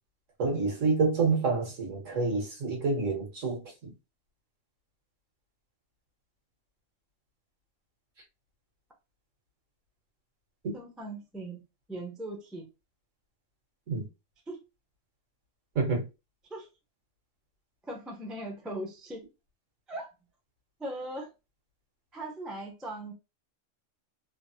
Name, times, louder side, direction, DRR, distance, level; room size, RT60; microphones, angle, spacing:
voice 1, 0.4-3.9 13.9-14.0 15.7-16.0, right 4 dB, 75° right, 1.5 m, -28 dB
voice 2, 10.7-11.6 11.9-12.6 14.5-14.6 16.5-16.7 17.8-19.3 19.9-20.1 20.8-21.3 22.1-23.1, right 1 dB, ahead, 0.4 m, -39 dB
3.2 x 2.0 x 2.7 m
omnidirectional pair, 1.3 m